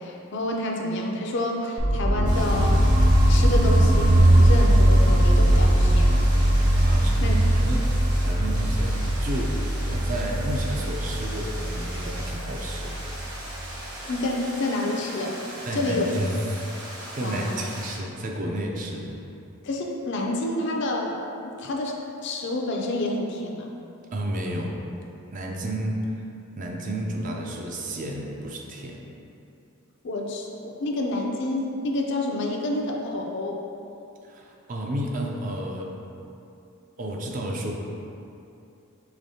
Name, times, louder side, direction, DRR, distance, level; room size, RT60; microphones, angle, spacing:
voice 1, 0.0-2.8 3.3-6.2 7.2-7.4 14.1-15.4 15.7-16.1 17.2-17.6 19.6-21.2 21.4-23.7 30.0-33.6, left 1 dB, 55° left, 0 dB, 0.4 m, -28 dB
sound 1, 1.8-13.7, right 1 dB, 65° right, 0.8 m, -20 dB
sound 2, 2.3-18.0, right 1 dB, 90° right, 1.2 m, -39 dB
voice 2, 6.8-7.9 8.2-13.0 15.7-16.6 17.1-19.2 24.1-24.8 25.3-26.2 26.6-29.0 34.2-36.0 37.0-37.7, right 1 dB, 40° right, 0 dB, 0.4 m, -31 dB
5.1 x 3.4 x 2.7 m, 2.7 s
head